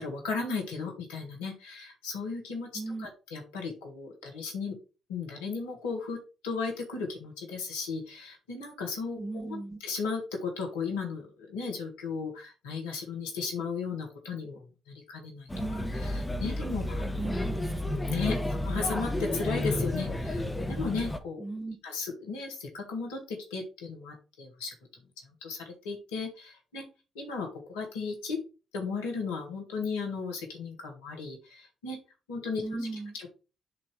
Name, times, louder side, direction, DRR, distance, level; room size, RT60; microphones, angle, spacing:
voice 1, 0.0-2.7 3.0-4.8 5.1-17.1 18.1-18.4 18.6-21.4 21.8-24.7 25.4-26.9 27.2-28.4 28.7-32.0 32.3-32.6 32.9-33.3, left 4 dB, 85° left, 1 dB, 1.6 m, -35 dB
voice 2, 2.7-3.1 9.2-9.8 15.5-15.9 17.2-17.7 18.3-18.4 21.4-21.8 32.6-33.1, right 2 dB, 15° right, 4 dB, 1.5 m, -36 dB
Male speech man speaking / Child speech kid speaking / Chatter, 15.5-21.2, left 1 dB, 20° left, 1.2 m, -31 dB
7.7 x 2.9 x 5.1 m, 0.32 s
hypercardioid pair, 45°, 0 cm